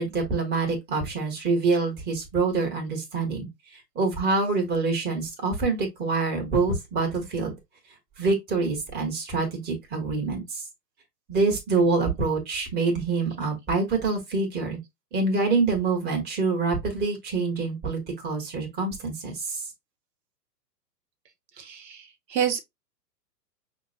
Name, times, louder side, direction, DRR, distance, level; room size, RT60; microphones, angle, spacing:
voice 1, 0.0-7.6 8.2-10.6 11.3-14.8 15.1-19.6, right 4 dB, 20° right, 1.3 m, -26 dB
voice 2, 21.6-22.0 22.3-22.6, right 8 dB, 80° right, 1.0 m, -27 dB
5.5 x 2.2 x 2.6 m
hypercardioid pair, 130°, 50 cm